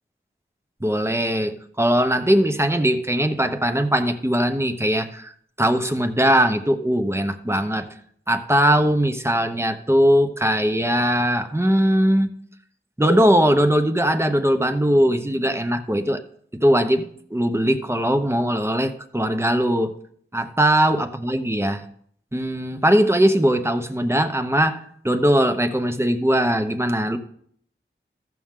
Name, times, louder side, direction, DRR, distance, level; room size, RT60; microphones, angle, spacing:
voice 1, 0.8-5.3 5.6-7.9 8.3-12.3 13.0-16.2 16.5-19.9 20.3-21.8 22.3-27.2, equal, 10° right, 7 dB, 0.9 m, -20 dB
14.5 x 6.1 x 3.7 m, 0.63 s
wide cardioid pair, 45°, 21 cm